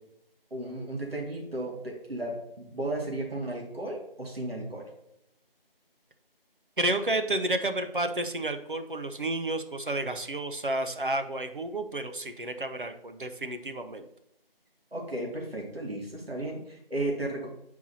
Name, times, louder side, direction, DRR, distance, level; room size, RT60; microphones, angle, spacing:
voice 1, 0.5-4.8 14.9-17.5, right 1 dB, 80° right, -1 dB, 2.5 m, -34 dB
voice 2, 6.8-14.0, right 2 dB, 60° right, 7 dB, 0.9 m, -31 dB
8.3 x 4.7 x 4.2 m, 0.80 s
figure-of-eight pair, 180°, 29 cm